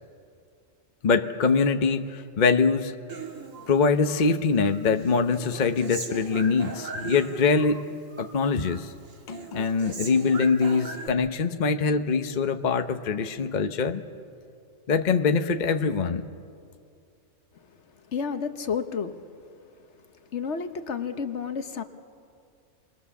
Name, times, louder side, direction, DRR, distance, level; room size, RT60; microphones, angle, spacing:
voice 1, 1.0-2.9 3.7-7.8 8.2-8.9 9.3-14.0 14.9-16.3, left 5 dB, 40° left, 7 dB, 0.9 m, -23 dB
Human voice, 3.1-4.3 4.6-7.8 8.1-8.8 9.1-11.1, right 4 dB, 85° right, 2.2 m, -39 dB
voice 2, 18.1-19.2 20.3-21.8, left 6 dB, 65° left, 8 dB, 1.3 m, -30 dB
29.0 x 21.5 x 7.1 m, 2.4 s
omnidirectional pair, 1.3 m